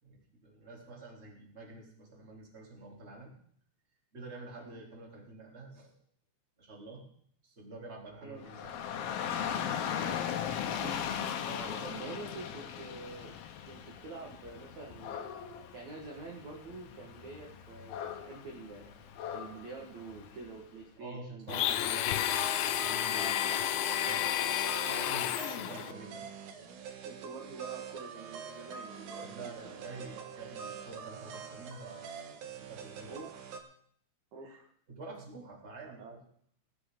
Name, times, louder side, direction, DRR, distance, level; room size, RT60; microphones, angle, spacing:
voice 1, 0.0-3.3 4.1-5.9 6.6-7.0 7.4-9.4 10.0-10.5 11.4-12.2 21.0-24.3 24.7-26.3 29.2-33.1 34.4-34.6 34.9-36.2, right 2 dB, 15° right, -2 dB, 2.8 m, -48 dB
Dog / Rain, 8.4-20.6, left 8 dB, 70° left, 2.7 m, -39 dB
voice 2, 10.6-11.0 11.8-15.3 15.7-18.9 19.3-22.0 22.3-22.4 24.8-25.1 26.6-26.7 27.0-30.4 33.0-33.6 34.3-34.7 35.8-36.2, right 3 dB, 55° right, -1 dB, 2.3 m, -47 dB
Domestic sounds home sounds, 21.5-25.9, left 11 dB, 90° left, 2.1 m, -31 dB
sound 1, 22.3-33.6, right 7 dB, 70° right, 1.9 m, -45 dB
18.5 x 12.0 x 3.8 m, 0.64 s
omnidirectional pair, 5.2 m